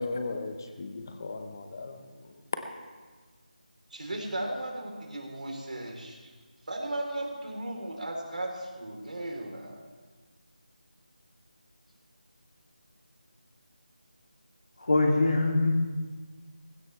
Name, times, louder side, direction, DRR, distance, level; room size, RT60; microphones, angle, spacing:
voice 1, 0.0-2.6, left 3 dB, 25° left, 7 dB, 0.9 m, -36 dB
voice 2, 3.9-6.3 6.7-9.8, right 1 dB, 65° right, 1 dB, 3.7 m, -36 dB
voice 3, 14.8-15.7, left 2 dB, 55° left, 0 dB, 2.7 m, -23 dB
18.5 x 16.5 x 3.3 m, 1.4 s
figure-of-eight pair, 175°, 5 cm